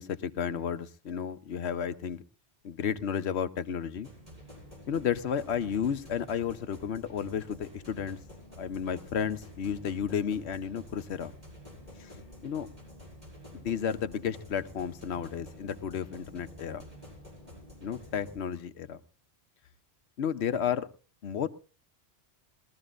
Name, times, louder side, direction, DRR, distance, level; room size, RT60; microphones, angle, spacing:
voice 1, 0.0-2.2 2.6-4.1 4.9-8.2 8.6-11.3 12.0-12.1 12.4-12.7 13.5-16.8 17.8-19.0 20.2-20.9 21.2-21.5, left 8 dB, 80° left, 11 dB, 1.1 m, -32 dB
sound 1, 4.0-18.4, left 1 dB, 40° right, 6.6 m, -49 dB
21.0 x 13.5 x 2.5 m, 0.33 s
omnidirectional pair, 1.1 m